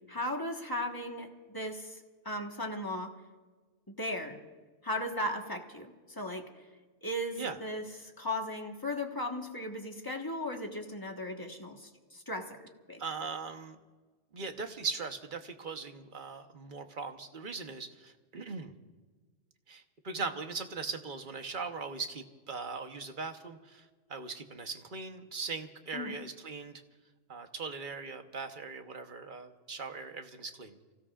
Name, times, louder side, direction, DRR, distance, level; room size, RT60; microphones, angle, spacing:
voice 1, 0.1-2.0 2.2-3.2 4.0-4.4 4.8-6.5 7.0-12.6 12.9-13.0 25.9-26.2, left 1 dB, 20° left, 2 dB, 1.4 m, -36 dB
voice 2, 13.0-13.8 14.3-18.7 19.7-26.8 27.3-30.8, right 4 dB, 45° right, 6 dB, 1.2 m, -40 dB
29.5 x 16.5 x 2.5 m, 1.4 s
omnidirectional pair, 1.2 m